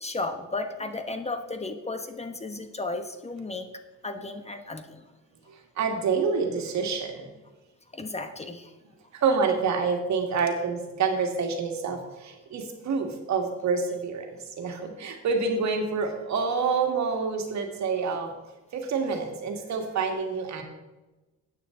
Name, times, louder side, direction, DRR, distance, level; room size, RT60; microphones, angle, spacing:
voice 1, 0.0-3.7 4.0-5.1 7.9-8.7, left 2 dB, 20° left, 7 dB, 1.1 m, -34 dB
voice 2, 5.8-7.3 9.1-18.3 18.7-20.6, right 5 dB, 65° right, 3 dB, 2.1 m, -27 dB
12.5 x 9.1 x 3.8 m, 1.1 s
cardioid pair, 90°, 30 cm